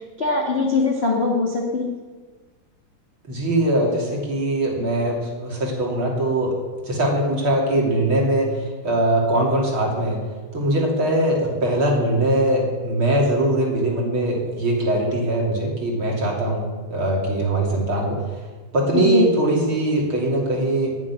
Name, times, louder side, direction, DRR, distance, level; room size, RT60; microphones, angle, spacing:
voice 1, 0.2-1.9 18.9-19.3, left 3 dB, 30° left, -3 dB, 1.1 m, -21 dB
voice 2, 3.3-6.5 6.8-10.2 10.5-18.2 18.7-20.9, right 1 dB, 35° right, -2 dB, 3.4 m, -21 dB
11.0 x 9.8 x 9.8 m, 1.4 s
omnidirectional pair, 4.1 m